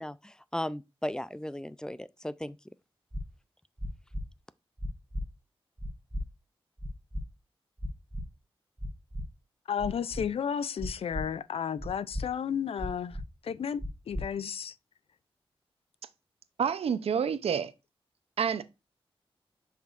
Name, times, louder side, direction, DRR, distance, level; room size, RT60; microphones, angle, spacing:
voice 1, 0.0-2.6, left 1 dB, 5° left, 0.4 m, -36 dB
sound 1, 3.1-3.2 3.8-4.2 4.8-5.2 5.8-6.2 6.8-7.2 7.8-8.2 8.8-9.2 9.8-10.2 10.8-11.2 11.8-12.2 12.8-13.2 13.8-14.2, left 1 dB, 15° right, 3.7 m, -35 dB
voice 2, 9.7-13.2 13.4-14.7, left 7 dB, 75° left, 0.4 m, -33 dB
voice 3, 16.6-17.7 18.4-18.6, right 7 dB, 80° right, 0.6 m, -28 dB
7.1 x 5.9 x 2.5 m
cardioid pair, 65°, 10 cm